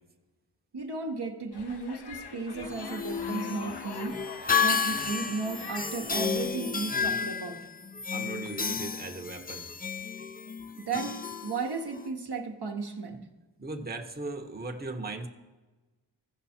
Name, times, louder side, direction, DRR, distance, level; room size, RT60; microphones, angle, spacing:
voice 1, 0.7-4.2 4.6-7.7 10.8-13.2, right 4 dB, 60° right, 2 dB, 1.0 m, -35 dB
sound 1, 1.5-6.5, left 4 dB, 60° left, 0.9 m, -44 dB
sound 2, 2.5-12.1, left 5 dB, 20° left, 0.5 m, -32 dB
voice 2, 8.1-9.7 13.6-15.3, right 3 dB, 20° right, 4 dB, 1.0 m, -37 dB
15.5 x 5.3 x 4.3 m, 1.2 s
cardioid pair, 45°, 44 cm